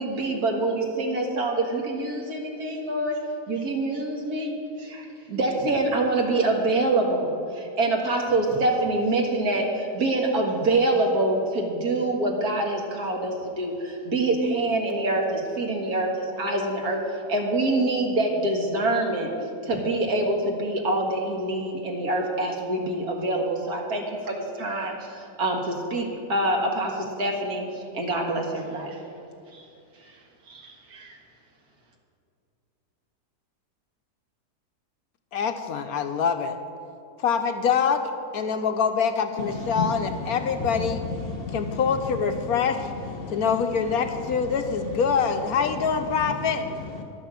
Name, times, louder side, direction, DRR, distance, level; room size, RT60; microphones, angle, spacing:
voice 1, 0.0-3.2 3.5-17.0 17.3-19.3 19.6-29.0 29.5-29.7 30.1-30.2 30.5-31.2, right 2 dB, 65° right, 1 dB, 2.1 m, -26 dB
voice 2, 35.3-36.6 37.2-41.0 41.5-42.9 43.3-46.6, left 6 dB, 70° left, 7 dB, 1.1 m, -25 dB
voice 3, 39.4-41.8 42.4-43.5 44.0-44.6 45.6-45.9 46.7-47.0, left 4 dB, 40° left, 3 dB, 1.0 m, -34 dB
11.0 x 9.0 x 7.4 m, 2.6 s
omnidirectional pair, 1.8 m